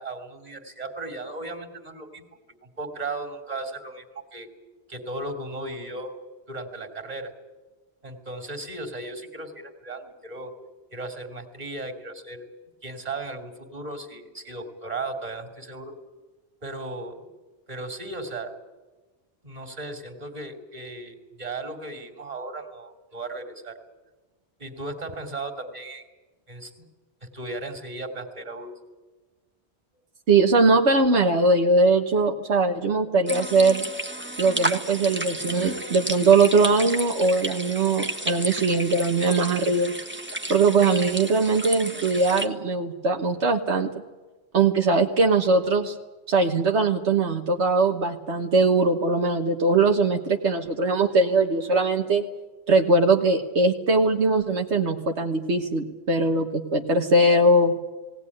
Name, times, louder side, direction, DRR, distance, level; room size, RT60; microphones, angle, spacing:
voice 1, 0.0-2.2 2.8-4.0 4.3-4.5 4.9-6.1 6.5-7.3 8.0-10.5 10.9-12.5 12.8-16.0 16.6-17.3 17.7-18.5 19.4-23.8 24.6-26.0 26.5-26.9 27.2-28.7, right 2 dB, 35° right, 4 dB, 3.0 m, -36 dB
voice 2, 30.3-33.9 34.4-39.9 40.5-43.9 44.5-46.0 46.3-52.2 52.7-57.7, right 3 dB, 80° right, 3 dB, 1.6 m, -21 dB
sound 1, 33.3-42.5, right 1 dB, 10° right, 1.4 m, -32 dB
19.0 x 18.5 x 9.9 m, 1.2 s
omnidirectional pair, 1.1 m